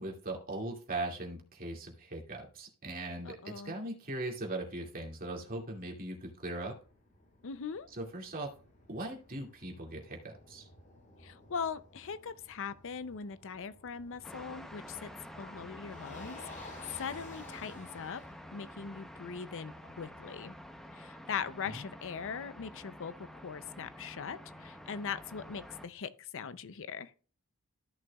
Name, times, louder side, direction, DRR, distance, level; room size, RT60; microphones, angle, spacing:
voice 1, 0.0-6.7 7.9-8.5 8.9-10.7 21.7-21.8, right 2 dB, 40° right, 2.3 m, -39 dB
voice 2, 3.2-3.7 7.4-7.9 11.2-15.1 15.4-18.2 18.5-20.6 20.9-23.1 23.4-27.1, left 6 dB, 60° left, 0.6 m, -40 dB
Motor vehicle (road), 5.8-20.9, left 2 dB, 40° left, 4.7 m, -55 dB
sound 1, 14.2-25.9, equal, ahead, 0.8 m, -49 dB
14.0 x 6.2 x 2.3 m
head